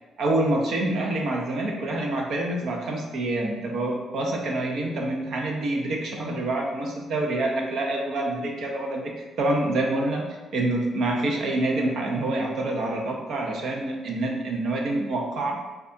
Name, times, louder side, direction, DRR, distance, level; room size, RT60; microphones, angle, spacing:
voice 1, 0.2-9.1 9.4-10.3 10.5-15.6, right 2 dB, 70° right, 1 dB, 0.6 m, -26 dB
4.6 x 2.3 x 2.6 m, 1.2 s
cardioid pair, 90°, 0 cm